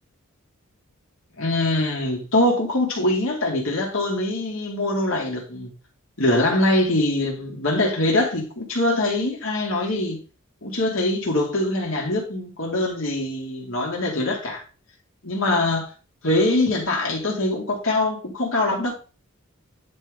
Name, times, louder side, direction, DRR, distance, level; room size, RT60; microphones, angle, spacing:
voice 1, 1.4-5.7 6.2-10.2 10.6-14.6 15.2-15.9 16.2-18.9, left 1 dB, 65° left, 2.5 m, -23 dB
10.5 x 3.8 x 3.7 m
head